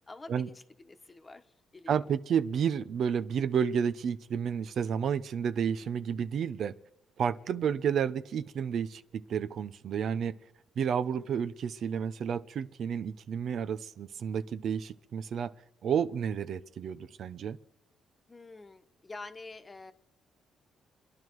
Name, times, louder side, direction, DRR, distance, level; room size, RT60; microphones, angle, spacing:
voice 1, 0.1-2.0 7.7-7.8 11.1-11.3 18.3-19.9, left 3 dB, 25° left, 1.2 m, -48 dB
voice 2, 1.9-6.7 7.2-10.4 10.8-15.5 15.8-17.6, right 7 dB, 65° right, 0.7 m, -31 dB
28.0 x 11.0 x 4.7 m
cardioid pair, 90°, 0 cm